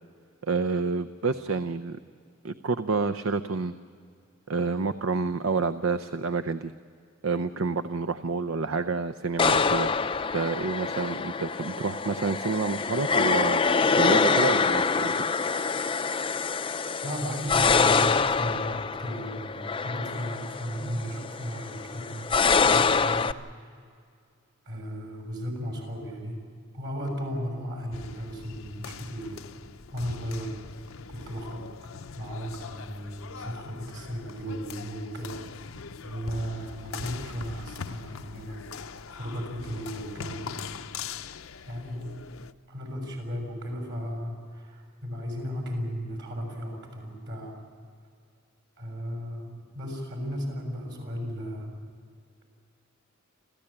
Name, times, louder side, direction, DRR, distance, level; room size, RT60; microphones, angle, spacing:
voice 1, 0.4-2.0 2.4-3.7 4.5-6.7 7.2-9.9 10.3-13.6 14.0-15.2, right 4 dB, 75° right, 12 dB, 0.7 m, -28 dB
sound 1, 9.4-23.3, left 5 dB, 25° left, 0.5 m, -25 dB
voice 2, 17.0-22.3 22.7-23.7 24.6-26.4 26.7-29.4 29.9-30.6 31.1-31.6 32.1-35.4 36.0-38.6 39.1-40.7 41.6-42.2 42.7-47.6 48.8-51.7, equal, 60° right, 2 dB, 6.8 m, -35 dB
sound 2, 27.9-42.5, left 6 dB, 80° left, 0.7 m, -42 dB
29.0 x 14.5 x 8.7 m, 2.3 s
head